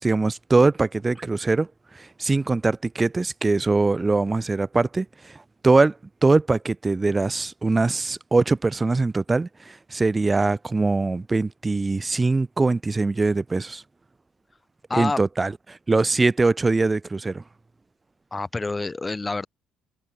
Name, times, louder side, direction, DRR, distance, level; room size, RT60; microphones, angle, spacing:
voice 1, 0.0-1.7 1.9-13.8 14.9-17.4, right 3 dB, 20° right, 1.8 m, -22 dB
voice 2, 14.9-15.2 18.3-19.5, left 3 dB, 20° left, 1.7 m, -27 dB
cardioid pair, 95°, 0 cm